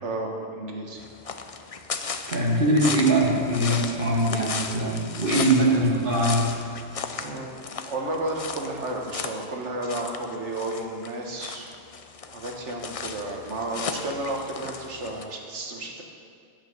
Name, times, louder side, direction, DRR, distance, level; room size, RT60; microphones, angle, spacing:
voice 1, 0.0-1.0 7.1-7.6 7.8-11.7 12.3-16.0, right 2 dB, 80° right, 1 dB, 1.7 m, -32 dB
sound 1, 1.0-15.2, left 5 dB, 40° left, 0.5 m, -36 dB
voice 2, 2.3-6.5, right 1 dB, 50° right, -2 dB, 2.0 m, -22 dB
10.5 x 8.8 x 6.5 m, 2.3 s
omnidirectional pair, 1.2 m